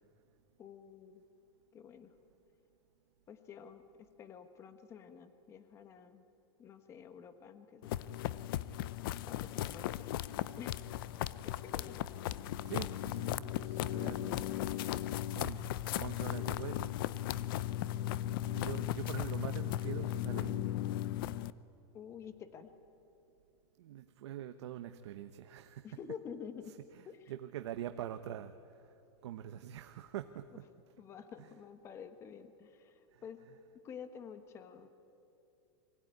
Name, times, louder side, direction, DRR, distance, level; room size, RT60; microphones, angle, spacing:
voice 1, 0.6-1.2 1.7-2.1 3.3-6.2 6.6-8.0 9.3-10.2 10.6-10.8 11.4-12.1 21.9-22.7 25.8-26.7 27.1-27.4 31.0-33.4 33.8-34.9, left 7 dB, 20° left, 10 dB, 1.1 m, -49 dB
sound 1, 7.8-21.5, left 13 dB, 50° left, 0.5 m, -36 dB
voice 2, 12.6-14.5 15.3-15.6 15.9-16.9 17.7-17.8 18.4-20.7 23.8-25.9 26.9-29.0 29.2-30.6 31.4-31.5 33.1-33.2, right 11 dB, 75° right, 8 dB, 0.9 m, -44 dB
23.5 x 16.5 x 9.6 m, 2.8 s
supercardioid pair, 170°, 14 cm